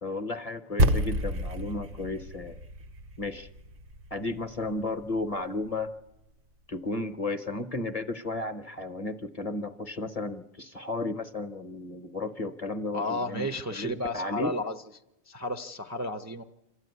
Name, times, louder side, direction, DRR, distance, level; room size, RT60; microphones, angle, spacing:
voice 1, 0.0-2.6 3.2-3.5 4.1-5.9 6.7-14.5, left 2 dB, 35° left, 9 dB, 0.8 m, -33 dB
sound 1, 0.8-5.3, equal, 50° right, 1.0 m, -30 dB
voice 2, 12.9-14.8 15.3-16.4, left 1 dB, 20° right, 5 dB, 0.6 m, -32 dB
26.0 x 13.0 x 9.4 m, 1.0 s
omnidirectional pair, 1.2 m